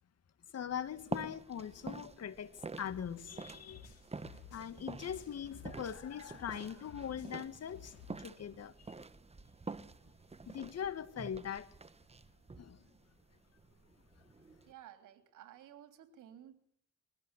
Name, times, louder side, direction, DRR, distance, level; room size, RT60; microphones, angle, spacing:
voice 1, 0.5-3.9 4.5-7.9 8.2-8.7 10.5-11.7 12.6-12.8, left 8 dB, 55° left, 1.8 m, -41 dB
sound 1, 0.7-14.7, right 3 dB, 20° right, 1.3 m, -48 dB
sound 2, 2.8-6.1 6.3-8.2, left 6 dB, 85° left, 3.9 m, -55 dB
voice 2, 14.7-16.5, right 11 dB, 85° right, 3.4 m, -54 dB
22.5 x 17.0 x 9.8 m
cardioid pair, 90°, 30 cm